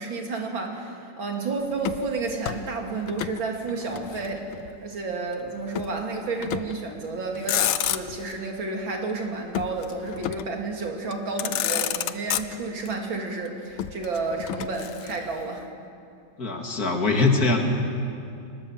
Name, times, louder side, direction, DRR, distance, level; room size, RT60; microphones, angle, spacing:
voice 1, 0.0-15.6, right 3 dB, 75° right, 1 dB, 3.4 m, -31 dB
Motor vehicle (road), 1.8-3.4 3.7-4.8 5.7-6.0 6.4-6.9 7.3-8.3 9.5-10.6 11.1-11.2 11.4-12.9 13.8-15.4, left 11 dB, 90° left, 1.6 m, -30 dB
voice 2, 16.4-17.6, left 3 dB, 50° left, 2 dB, 2.6 m, -22 dB
25.0 x 20.5 x 7.4 m, 2.5 s
omnidirectional pair, 2.2 m